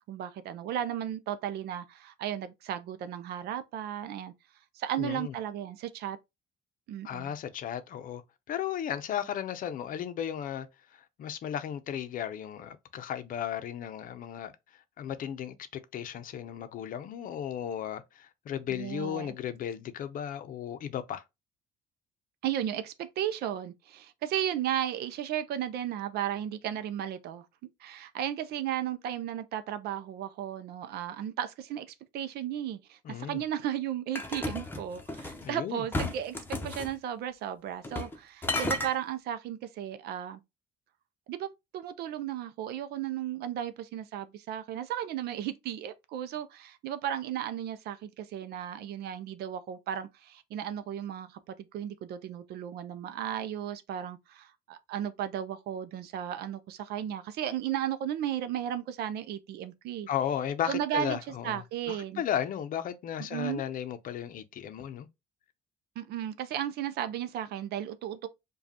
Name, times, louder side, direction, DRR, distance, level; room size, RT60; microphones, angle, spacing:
voice 1, 0.0-4.3 4.7-6.2 6.9-7.3 18.7-19.3 22.4-27.5 27.8-40.4 41.3-60.1 60.6-62.2 63.3-63.6 66.0-68.3, right 10 dB, 70° right, 0.5 m, -35 dB
voice 2, 5.0-5.3 7.0-8.2 8.5-10.7 11.2-14.5 15.0-15.5 15.9-21.2 33.0-33.4 35.4-35.8 60.1-61.6 61.9-65.1, left 9 dB, 55° left, 0.6 m, -35 dB
sound 1, 34.1-35.4 35.9-36.9 37.8-38.2 38.4-38.9, left 2 dB, 10° left, 0.7 m, -33 dB
5.0 x 2.3 x 2.8 m
cardioid pair, 110°, 17 cm